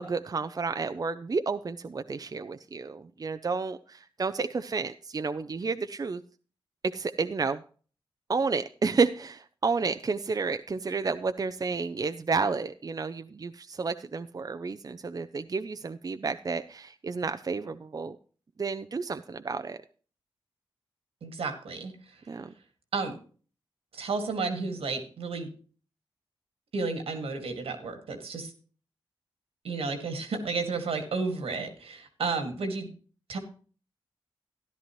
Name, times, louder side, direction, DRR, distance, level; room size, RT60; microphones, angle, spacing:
voice 1, 0.0-6.2 6.9-7.6 8.3-18.2 18.6-19.8 22.3-22.5, right 4 dB, 40° right, 9 dB, 0.5 m, -31 dB
voice 2, 21.2-22.2 22.9-23.2 23.9-25.5 26.7-28.5 29.6-32.9 33.3-33.4, right 4 dB, 80° right, 6 dB, 2.0 m, -32 dB
13.5 x 10.5 x 3.1 m, 0.40 s
cardioid pair, 55°, 10 cm